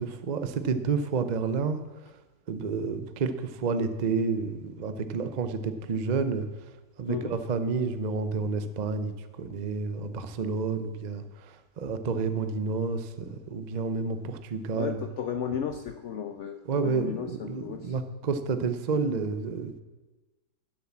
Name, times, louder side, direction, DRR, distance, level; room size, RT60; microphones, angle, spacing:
voice 1, 0.0-1.8 2.5-6.5 7.0-15.0 16.7-19.7, right 4 dB, 75° right, 10 dB, 0.4 m, -30 dB
voice 2, 7.1-7.4 14.8-18.0, left 7 dB, 85° left, 9 dB, 0.6 m, -34 dB
11.5 x 7.7 x 7.3 m, 1.2 s
omnidirectional pair, 1.9 m